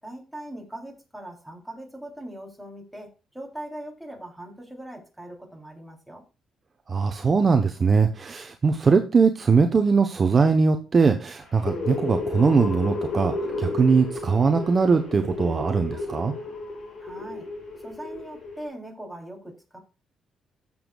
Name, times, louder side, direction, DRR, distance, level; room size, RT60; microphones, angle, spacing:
voice 1, 0.0-6.2 17.0-17.5 17.8-19.8, right 1 dB, ahead, 0 dB, 3.3 m, -40 dB
voice 2, 6.9-16.3, right 5 dB, 35° right, 6 dB, 0.9 m, -21 dB
sound 1, 11.4-18.7, left 3 dB, 55° left, 5.1 m, -32 dB
15.0 x 7.1 x 2.3 m, 0.33 s
cardioid pair, 90°, 0 cm